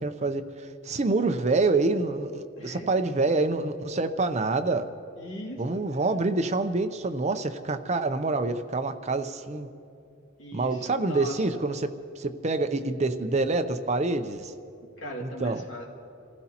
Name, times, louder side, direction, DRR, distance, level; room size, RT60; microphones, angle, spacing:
voice 1, 0.0-4.9 5.6-9.7 10.5-11.9 12.2-14.5 15.2-15.6, right 3 dB, 35° right, 9 dB, 0.6 m, -27 dB
voice 2, 2.6-3.1 5.2-5.8 10.4-11.6 15.0-15.9, equal, 70° left, -1 dB, 2.5 m, -40 dB
28.0 x 15.0 x 2.9 m, 2.6 s
head